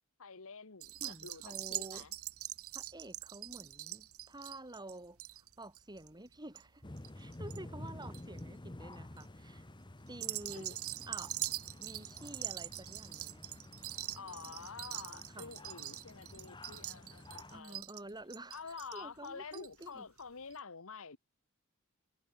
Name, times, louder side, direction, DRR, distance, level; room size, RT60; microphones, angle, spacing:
voice 1, 0.2-2.1 10.5-10.6 14.1-17.8 18.5-21.2, left 5 dB, 65° left, 1.5 m, -48 dB
sound 1, 0.8-7.6 7.9-8.4 8.9-9.2 10.1-19.9 20.2-20.3 20.5-20.6, right 15 dB, 70° right, 1.5 m, -43 dB
voice 2, 1.0-2.1 2.7-6.8 7.2-9.7 10.1-10.8 11.1-11.4 11.8-13.6 15.3-15.5 17.5-20.1, right 1 dB, 20° right, 5.5 m, -50 dB
sound 2, 6.8-17.6, left 1 dB, 20° left, 1.0 m, -50 dB
head